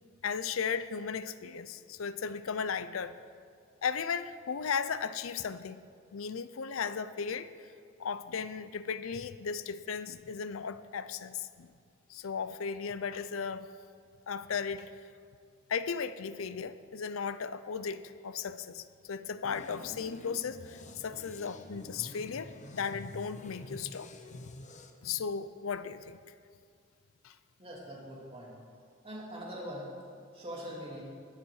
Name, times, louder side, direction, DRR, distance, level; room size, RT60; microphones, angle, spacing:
voice 1, 0.2-3.2 3.8-5.8 6.1-7.5 8.0-11.7 12.1-13.7 14.3-15.0 15.7-24.5 25.0-26.2 27.2-27.4, left 6 dB, 80° left, 13 dB, 0.5 m, -36 dB
sound 1, 19.4-24.9, left 2 dB, 35° left, 0.8 m, -48 dB
voice 2, 27.6-28.5 29.0-29.9 30.3-31.0, equal, 30° right, -5 dB, 3.1 m, -42 dB
20.0 x 7.2 x 4.8 m, 2.2 s
head